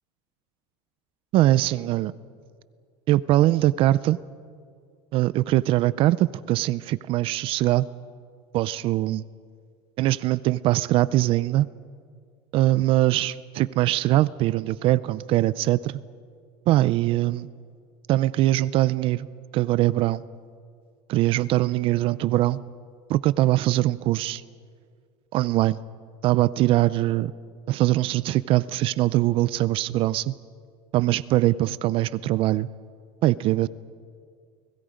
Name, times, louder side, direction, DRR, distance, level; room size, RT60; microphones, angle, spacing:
voice 1, 1.3-2.1 3.1-4.2 5.1-7.9 8.5-9.2 10.0-11.7 12.5-15.9 16.7-17.5 18.1-19.3 19.5-20.2 21.1-22.6 23.1-24.4 25.3-25.8 26.2-27.3 27.7-30.3 30.9-32.7 33.2-33.7, right 15 dB, 45° right, 18 dB, 0.4 m, -22 dB
29.5 x 20.5 x 5.1 m, 2.1 s
cardioid pair, 150°, 13 cm